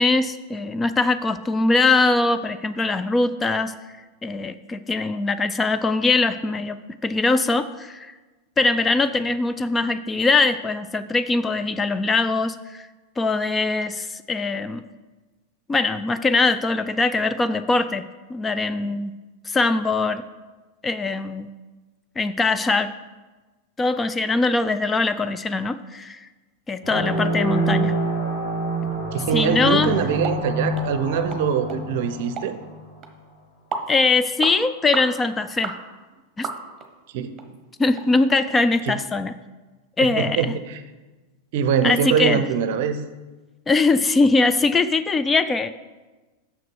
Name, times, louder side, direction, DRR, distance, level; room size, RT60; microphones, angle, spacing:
voice 1, 0.0-3.7 4.2-8.1 8.6-12.9 13.2-14.8 15.7-18.0 18.3-19.1 19.5-20.2 20.8-21.5 22.2-22.9 23.8-26.3 26.7-27.9 29.3-29.9 33.9-35.7 36.4-36.5 37.8-39.3 40.0-40.4 41.8-42.4 43.7-45.7, left 3 dB, 15° left, 11 dB, 0.4 m, -21 dB
sound 1, 26.8-33.0, right 1 dB, 80° left, 2.8 m, -26 dB
voice 2, 29.1-32.6 37.1-37.3 38.8-39.0 40.0-40.8 41.5-43.0, right 7 dB, 50° right, 11 dB, 0.6 m, -23 dB
sound 2, 30.2-30.4 30.8-30.9 31.3-31.4 31.7-31.8 32.4-32.5 33.0-33.1 33.7-33.9 34.4-34.6 34.9-35.1 35.6-35.8 36.4-36.9 37.4-37.5 38.0-38.1 38.5-38.6, right 5 dB, 25° right, 1.0 m, -31 dB
6.5 x 6.3 x 6.3 m, 1.2 s
figure-of-eight pair, 90°, 0 cm